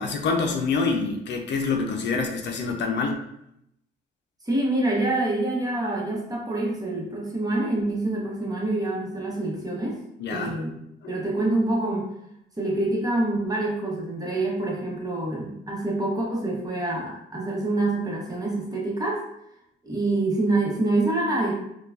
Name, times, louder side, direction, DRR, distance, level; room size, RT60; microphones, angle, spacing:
voice 1, 0.0-3.2 10.2-10.6, left 4 dB, 60° left, 3 dB, 0.6 m, -26 dB
voice 2, 4.4-10.0 10.3-10.8 11.1-12.1 12.6-19.2 19.8-21.5, right 2 dB, 20° right, -3 dB, 1.1 m, -26 dB
4.4 x 2.3 x 2.5 m, 0.78 s
cardioid pair, 90°, 20 cm